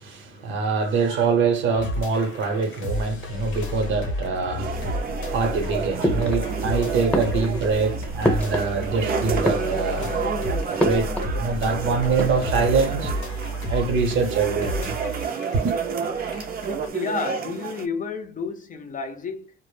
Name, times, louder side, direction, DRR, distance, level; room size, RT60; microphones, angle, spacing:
voice 1, 0.0-10.1 10.7-13.1 13.7-14.9 15.6-15.8, right 4 dB, 80° right, 0.8 m, -24 dB
sound 1, 1.7-16.9, left 1 dB, 90° left, 0.7 m, -31 dB
sound 2, 4.6-17.9, right 6 dB, 50° right, 0.5 m, -30 dB
sound 3, 6.0-6.7 7.1-9.0 9.3-10.2 10.8-11.4 11.7-11.8 12.0-12.7, left 1 dB, 5° left, 0.8 m, -27 dB
voice 2, 16.9-19.5, left 4 dB, 40° left, 0.6 m, -31 dB
2.1 x 2.0 x 3.1 m
cardioid pair, 90°, 20 cm